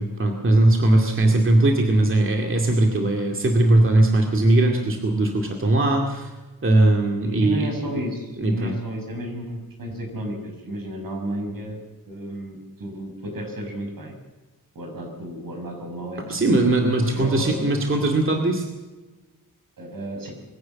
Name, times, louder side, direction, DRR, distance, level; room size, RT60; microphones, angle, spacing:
voice 1, 0.0-6.3 6.6-7.9 8.4-8.8 16.3-18.7, right 2 dB, 35° right, 2 dB, 2.3 m, -19 dB
voice 2, 7.2-11.8 12.1-14.1 14.7-16.5 17.1-17.6 19.8-20.3, right 1 dB, 75° right, 3 dB, 6.4 m, -33 dB
22.5 x 16.5 x 7.6 m, 1.2 s
wide cardioid pair, 170°, 35 cm